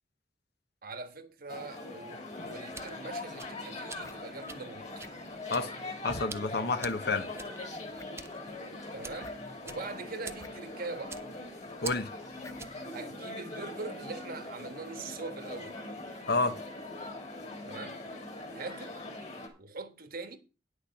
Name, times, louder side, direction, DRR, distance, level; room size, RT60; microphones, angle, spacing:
voice 1, 0.8-4.9 8.9-9.4 9.6-11.2 12.9-15.8 17.6-18.0 18.5-19.0 19.6-20.4, right 3 dB, 55° right, 1.4 m, -42 dB
sound 1, 1.5-19.5, left 2 dB, 40° left, 2.8 m, -42 dB
sound 2, 2.4-12.9, right 4 dB, 15° right, 0.7 m, -48 dB
sound 3, 3.1-3.2 4.0-4.2 5.0-5.4 6.0-6.3 6.9-7.0 7.3-7.4 7.9-8.3 9.2-9.4 10.4-10.5 10.8-10.9 12.4-12.6, left 1 dB, 20° left, 0.8 m, -48 dB
voice 2, 6.0-7.3 11.8-12.1 16.3-16.6, left 3 dB, 65° left, 1.0 m, -29 dB
10.0 x 6.6 x 5.9 m
head